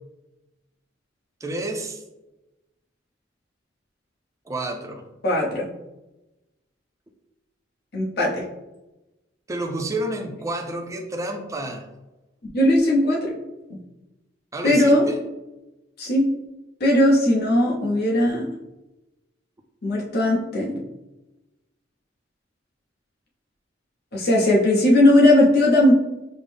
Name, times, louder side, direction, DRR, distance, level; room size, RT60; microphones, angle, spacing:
voice 1, 1.4-2.0 4.5-5.0 9.5-11.9 14.5-15.2, right 1 dB, 15° right, 3 dB, 0.4 m, -29 dB
voice 2, 5.2-5.7 7.9-8.4 12.5-13.4 14.6-15.0 16.0-16.3 16.8-18.5 19.8-20.7 24.1-25.9, left 1 dB, 55° left, -3 dB, 0.9 m, -18 dB
5.1 x 2.0 x 3.5 m, 1.0 s
head